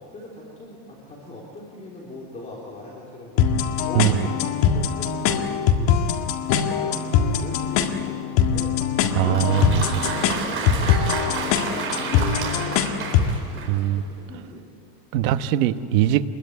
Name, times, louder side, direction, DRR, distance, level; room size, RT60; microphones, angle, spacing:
voice 1, 0.1-6.0 6.6-11.0 11.7-14.7, left 2 dB, 15° left, -4 dB, 3.5 m, -39 dB
sound 1, 3.4-13.4, left 7 dB, 45° left, 1.8 m, -22 dB
Applause, 9.1-14.0, right 5 dB, 25° right, 4.2 m, -31 dB
voice 2, 9.1-9.8 13.7-14.0 15.1-16.2, right 13 dB, 55° right, 10 dB, 1.2 m, -21 dB
26.0 x 21.5 x 9.7 m, 2.6 s
supercardioid pair, 175°, 48 cm